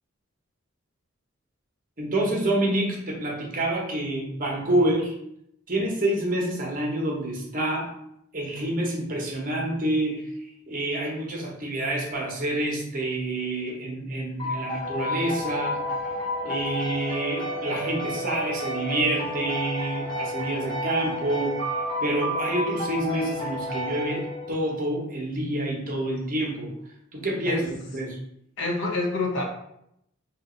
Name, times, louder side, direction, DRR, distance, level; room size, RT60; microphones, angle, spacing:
voice 1, 2.0-5.1 5.7-7.9 8.3-15.8 16.4-21.6 22.0-26.7 27.1-28.2, right 1 dB, 40° right, -2 dB, 0.9 m, -27 dB
sound 1, 14.4-24.8, equal, 25° left, 1.1 m, -31 dB
voice 2, 28.6-29.4, left 2 dB, 65° left, 0 dB, 0.8 m, -26 dB
2.8 x 2.6 x 3.7 m, 0.75 s
head